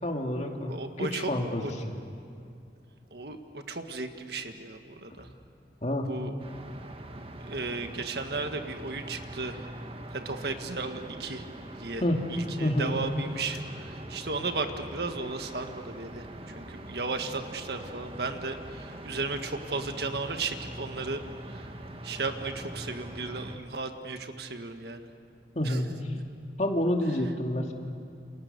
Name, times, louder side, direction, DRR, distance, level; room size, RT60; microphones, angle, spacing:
voice 1, 0.0-0.7 1.0-1.9 5.8-6.1 12.0-12.2 12.6-13.0 25.6-25.9 26.6-27.7, left 1 dB, 40° left, 2 dB, 2.4 m, -28 dB
voice 2, 0.7-1.3 1.6-1.7 3.1-5.3 6.1-6.3 7.4-9.6 10.1-11.4 11.8-12.0 12.3-21.2 21.5-21.7 22.0-25.1 25.6-25.8, right 3 dB, 60° right, 6 dB, 1.7 m, -35 dB
sound 1, 6.4-23.6, right 1 dB, 30° right, 1.7 m, -43 dB
28.5 x 28.5 x 6.8 m, 2.4 s
head